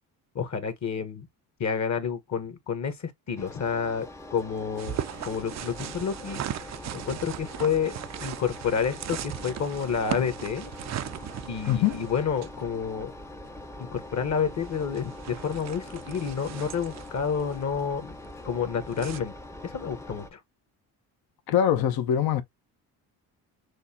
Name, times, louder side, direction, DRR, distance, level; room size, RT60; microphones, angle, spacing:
voice 1, 0.3-1.3 1.6-5.0 5.2-6.4 6.9-10.7 11.5-13.1 13.8-18.2 18.4-19.3 19.6-20.4, left 6 dB, 40° left, 1.2 m, -29 dB
Engine, 3.4-20.3, left 1 dB, 5° left, 0.7 m, -43 dB
sound 1, 4.8-19.2, right 11 dB, 45° right, 0.5 m, -39 dB
voice 2, 21.5-22.4, left 10 dB, 60° left, 0.9 m, -23 dB
6.4 x 2.2 x 2.7 m
cardioid pair, 95°, 41 cm